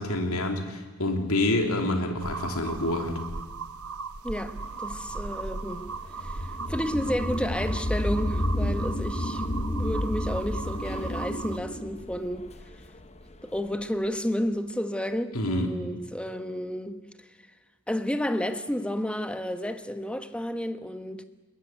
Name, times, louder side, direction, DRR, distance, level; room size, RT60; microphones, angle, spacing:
voice 1, 0.0-3.2 15.3-15.8, left 1 dB, 70° left, 3.2 m, -27 dB
sound 1, 2.2-11.6, right 4 dB, 75° right, 1.2 m, -38 dB
voice 2, 4.2-5.8 6.2-12.5 13.4-17.0 17.9-21.2, equal, 5° left, 1.1 m, -31 dB
sound 2, 4.6-13.5, left 1 dB, 30° left, 1.2 m, -31 dB
21.5 x 20.5 x 9.3 m
head